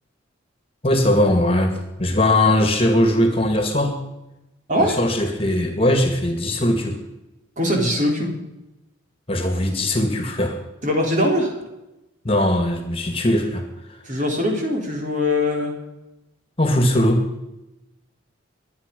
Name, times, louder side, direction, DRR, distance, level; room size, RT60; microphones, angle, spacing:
voice 1, 0.8-3.9 5.0-7.0 9.3-10.6 12.2-13.6 13.9-14.0 16.6-17.2, left 1 dB, 30° left, 5 dB, 2.2 m, -20 dB
voice 2, 7.6-8.3 10.8-11.5 14.0-15.8, left 1 dB, 40° right, 1 dB, 3.7 m, -21 dB
23.5 x 9.6 x 5.4 m, 0.96 s
head